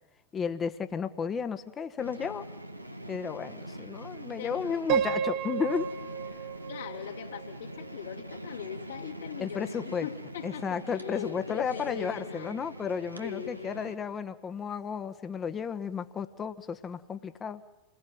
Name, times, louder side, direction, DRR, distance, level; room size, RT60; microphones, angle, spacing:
voice 1, 0.3-2.5 3.1-5.9 9.4-10.1 10.4-17.6, left 6 dB, 20° left, 11 dB, 1.5 m, -33 dB
sound 1, 2.0-14.0, right 1 dB, 85° right, 1.6 m, -43 dB
voice 2, 4.4-4.9 6.7-12.6 13.2-13.8, left 9 dB, 60° left, 0 dB, 3.3 m, -41 dB
Piano, 4.9-7.9, right 8 dB, 40° right, 1.4 m, -32 dB
28.5 x 21.0 x 9.4 m, 1.1 s
figure-of-eight pair, 90°, 0 cm